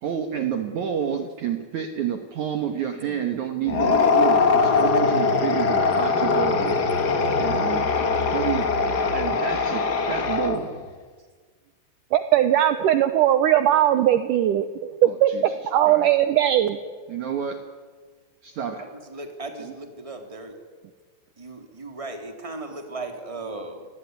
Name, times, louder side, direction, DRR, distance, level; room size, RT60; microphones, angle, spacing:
voice 1, 0.0-6.8 7.4-8.9 9.1-10.7 15.1-15.5 15.8-16.1 17.1-17.7 18.4-18.8, right 8 dB, 60° right, 6 dB, 2.3 m, -29 dB
sound 1, 3.7-10.8, left 4 dB, 85° left, 0.9 m, -22 dB
voice 2, 12.1-16.8, right 12 dB, 75° right, 10 dB, 2.0 m, -20 dB
voice 3, 18.8-20.6 21.4-23.9, right 2 dB, 10° right, 4 dB, 2.8 m, -37 dB
28.0 x 20.5 x 9.6 m, 1.5 s
omnidirectional pair, 4.8 m